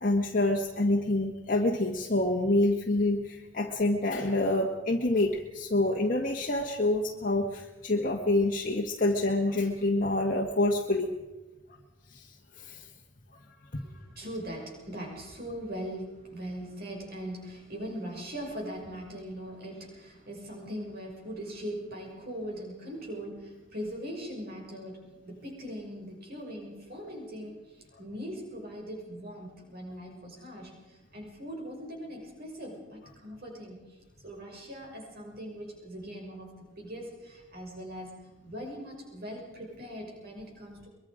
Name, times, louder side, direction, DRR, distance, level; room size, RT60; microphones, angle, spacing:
voice 1, 0.0-11.1 12.1-12.9 13.7-13.8 33.0-33.1, left 2 dB, 45° left, 0 dB, 1.6 m, -27 dB
voice 2, 13.8-40.9, equal, 50° right, 0 dB, 6.3 m, -41 dB
23.5 x 23.0 x 5.1 m, 1.1 s
head